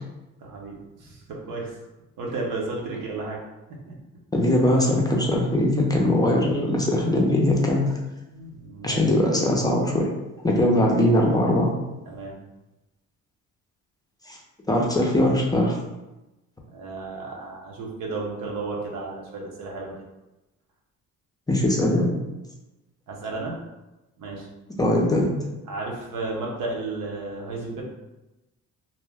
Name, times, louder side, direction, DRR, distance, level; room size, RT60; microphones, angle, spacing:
voice 1, 0.4-1.7 2.2-3.4 3.9-4.0 8.3-9.1 12.0-12.4 16.7-19.9 23.1-23.6 24.2-24.5 25.7-27.8, right 3 dB, 80° right, -2 dB, 0.9 m, -33 dB
voice 2, 4.3-7.8 8.8-10.1 10.4-11.7 14.3-14.4 14.7-15.8 21.5-22.1 24.8-25.3, left 1 dB, 10° left, -2 dB, 0.5 m, -21 dB
2.6 x 2.1 x 3.3 m, 1.0 s
cardioid pair, 95°, 32 cm